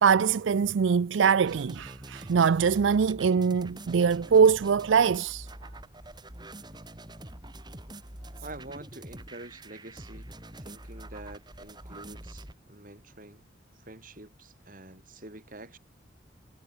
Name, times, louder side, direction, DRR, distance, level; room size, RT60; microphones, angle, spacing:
voice 1, 0.0-5.5, right 6 dB, 85° right, 0.4 m, -23 dB
sound 1, 1.5-12.5, right 1 dB, 25° right, 5.4 m, -45 dB
voice 2, 8.4-10.3 10.6-13.4 13.8-15.8, right 2 dB, 45° right, 6.4 m, -47 dB
head